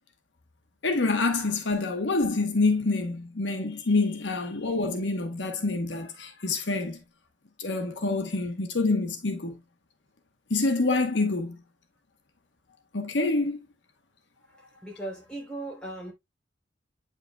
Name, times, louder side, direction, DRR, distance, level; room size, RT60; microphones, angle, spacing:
voice 1, 0.8-7.0 7.6-9.5 10.5-11.6 12.9-13.6, left 3 dB, 70° left, 1.1 m, -26 dB
voice 2, 14.5-16.1, right 2 dB, 5° left, 3.3 m, -38 dB
8.6 x 5.8 x 2.2 m
head